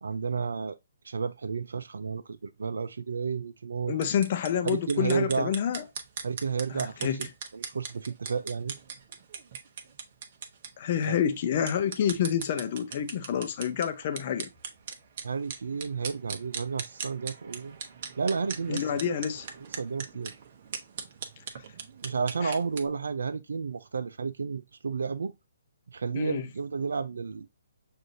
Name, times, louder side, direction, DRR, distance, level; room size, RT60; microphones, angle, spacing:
voice 1, 0.0-0.8 1.0-4.0 4.6-5.5 6.2-7.2 7.5-8.7 11.0-11.2 15.2-17.8 18.2-19.0 19.8-20.4 22.0-25.3 25.9-27.5, right 5 dB, 75° right, 0.4 m, -31 dB
voice 2, 3.9-5.8 6.7-7.3 10.8-14.5 18.7-19.5 22.4-22.6 26.1-26.4, left 9 dB, 40° left, 0.6 m, -28 dB
sound 1, 3.9-22.9, right 6 dB, 45° right, 0.9 m, -41 dB
6.3 x 2.6 x 2.6 m
hypercardioid pair, 150°, 0 cm